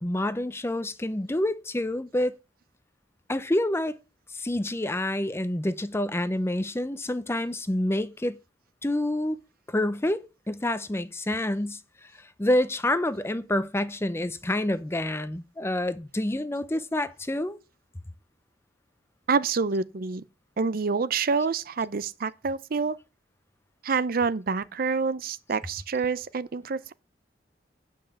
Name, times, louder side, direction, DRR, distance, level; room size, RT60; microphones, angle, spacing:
voice 1, 0.0-2.4 3.3-4.0 4.3-8.4 8.8-9.4 9.7-11.8 12.4-17.6, left 1 dB, 15° left, 0.6 m, -28 dB
voice 2, 19.3-20.2 20.6-23.0 23.8-26.9, right 5 dB, 55° right, 0.5 m, -27 dB
8.8 x 5.5 x 7.0 m
head